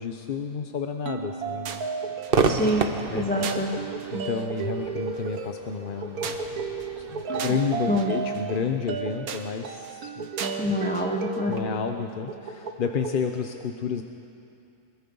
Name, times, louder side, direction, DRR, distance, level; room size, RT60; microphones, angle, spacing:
voice 1, 0.0-1.9 3.1-3.3 4.1-6.6 7.0-10.3 11.5-14.0, left 6 dB, 45° left, 5 dB, 0.8 m, -31 dB
sound 1, 1.1-13.2, right 5 dB, 80° right, 1.6 m, -33 dB
Crowd / Fireworks, 2.3-9.6, right 4 dB, 45° right, 1.0 m, -32 dB
voice 2, 2.4-3.8 7.9-8.1 10.6-11.6, left 1 dB, 5° left, 0 dB, 1.0 m, -26 dB
23.0 x 22.0 x 5.5 m, 2.6 s
omnidirectional pair, 1.5 m